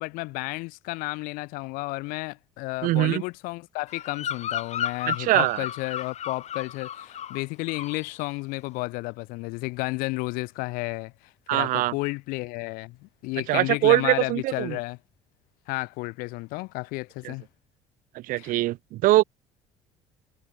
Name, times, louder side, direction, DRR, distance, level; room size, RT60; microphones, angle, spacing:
voice 1, 0.0-11.1 11.5-15.0 15.7-17.4 18.4-18.5, left 24 dB, 80° left, 4.3 m, -32 dB
voice 2, 2.8-3.2 5.1-5.6 11.5-11.9 13.5-14.8 17.2-17.3 18.1-19.2, right 17 dB, 75° right, 2.2 m, -22 dB
Bird vocalization bird call bird song, 3.9-7.4 7.7-8.1, left 10 dB, 50° left, 3.0 m, -33 dB
supercardioid pair, 90°, 14 cm